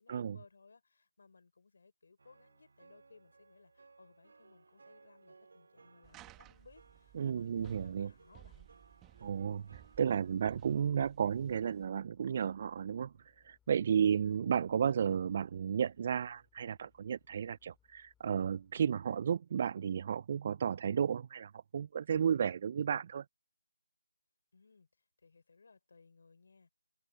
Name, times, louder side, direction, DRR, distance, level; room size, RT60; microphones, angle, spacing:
voice 1, 0.0-8.7 24.5-24.9 25.2-26.7, left 4 dB, 55° left, 5.9 m, -62 dB
sound 1, 2.2-11.0, right 4 dB, 60° right, 4.2 m, -63 dB
sound 2, 6.0-11.9, right 16 dB, 10° right, 1.6 m, -59 dB
voice 2, 7.1-8.1 9.2-13.1 13.4-23.2, right 8 dB, 35° right, 0.3 m, -33 dB
Engine, 10.0-19.2, left 9 dB, 5° left, 3.5 m, -75 dB
figure-of-eight pair, 160°, 0 cm